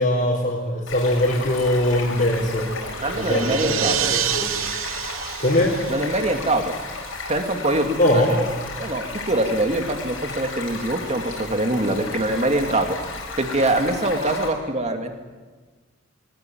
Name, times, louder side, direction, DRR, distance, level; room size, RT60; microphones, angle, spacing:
voice 1, 0.0-2.7 3.2-4.7 5.4-5.8 8.0-8.3, left 1 dB, 45° left, -5 dB, 4.2 m, -21 dB
Stream, 0.9-14.5, left 3 dB, 80° left, 6.0 m, -34 dB
sound 1, 2.5-6.9, right 10 dB, 80° right, 1.0 m, -29 dB
voice 2, 3.0-4.1 5.9-6.7 7.3-8.5 8.8-13.0 13.4-15.1, right 1 dB, 35° right, 5 dB, 2.3 m, -23 dB
20.5 x 19.5 x 9.3 m, 1.4 s
head